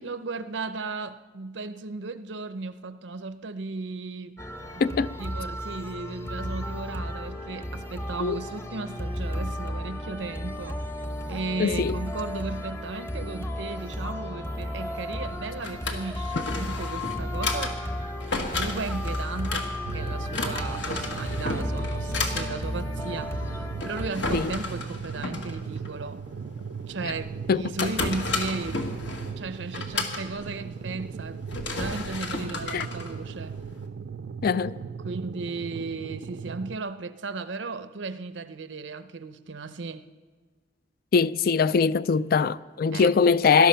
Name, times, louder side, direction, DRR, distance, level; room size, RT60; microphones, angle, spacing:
voice 1, 0.0-4.4 4.8-10.8 11.3-17.8 18.6-26.3 26.9-28.9 29.4-31.4 31.7-33.6 35.0-40.1 42.9-43.1, right 3 dB, 90° right, 0.7 m, -35 dB
sound 1, 4.4-24.1, left 1 dB, 15° left, 0.9 m, -33 dB
voice 2, 4.8-5.1 8.2-8.4 11.6-12.0 24.3-24.5 27.0-27.1 27.5-27.9 32.7-32.9 34.4-34.8 41.1-43.7, left 5 dB, 55° left, 0.4 m, -22 dB
Drawer open or close, 15.3-33.9, left 3 dB, 75° left, 1.7 m, -34 dB
sound 2, 19.8-36.8, right 6 dB, 60° right, 0.3 m, -38 dB
18.5 x 12.5 x 5.7 m
head